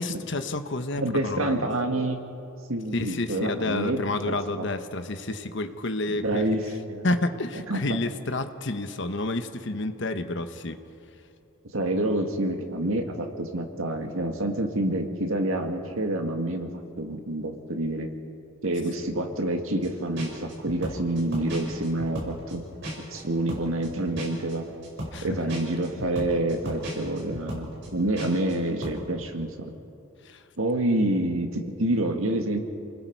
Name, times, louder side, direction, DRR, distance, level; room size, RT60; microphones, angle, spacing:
voice 1, 0.0-1.7 2.9-6.5 7.0-10.8 25.1-25.5 30.2-30.4, left 2 dB, 60° left, 9 dB, 1.1 m, -30 dB
voice 2, 1.0-2.2 2.7-4.0 4.3-4.7 6.1-6.6 6.9-7.1 7.7-8.0 11.7-18.1 18.6-22.6 23.0-24.7 25.2-29.7 30.6-32.6, right 1 dB, 85° right, 4 dB, 1.9 m, -27 dB
sound 1, 19.8-19.9 20.1-23.2 23.5-28.5 28.8-29.0, equal, 60° right, 5.4 m, -35 dB
28.5 x 20.0 x 4.7 m, 2.7 s
head